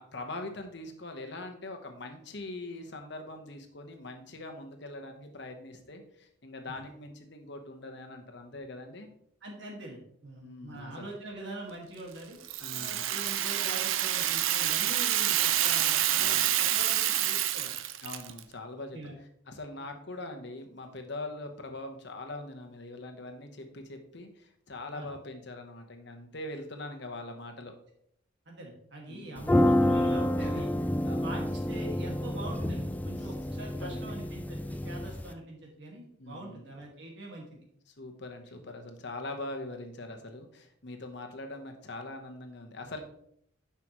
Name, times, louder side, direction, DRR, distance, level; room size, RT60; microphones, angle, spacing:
voice 1, 0.0-9.1 10.4-11.1 12.6-13.0 16.2-16.5 18.0-27.7 29.1-29.5 30.4-30.6 31.0-31.4 33.2-33.3 33.8-34.1 36.2-36.6 37.9-43.0, left 2 dB, 60° left, 5 dB, 1.1 m, -42 dB
voice 2, 9.4-12.4 12.7-17.8 18.9-19.1 24.9-25.1 28.5-30.7 31.2-37.6, right 2 dB, 60° right, -1 dB, 2.0 m, -43 dB
Rattle (instrument), 12.4-18.4, right 12 dB, 80° right, 0.5 m, -28 dB
sound 1, 29.4-35.3, left 1 dB, 10° left, 0.3 m, -28 dB
9.7 x 5.8 x 3.1 m, 0.69 s
head